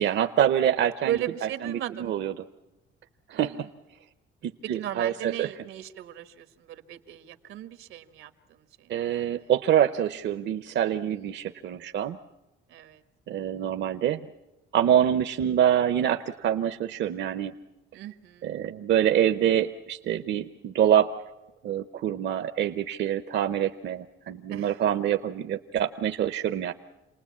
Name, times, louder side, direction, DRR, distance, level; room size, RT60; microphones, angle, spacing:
voice 1, 0.0-1.2 1.6-2.3 3.3-3.7 4.4-5.5 8.9-12.2 13.3-14.3 14.7-17.5 18.4-21.1 21.6-26.7, right 10 dB, 60° right, 8 dB, 0.8 m, -25 dB
voice 2, 1.0-2.2 3.3-3.7 4.6-9.5 11.0-11.2 12.7-13.0 17.9-18.6 24.5-24.8, right 12 dB, 90° right, 10 dB, 1.5 m, -37 dB
28.5 x 19.5 x 8.5 m, 1.0 s
cardioid pair, 135°, 20 cm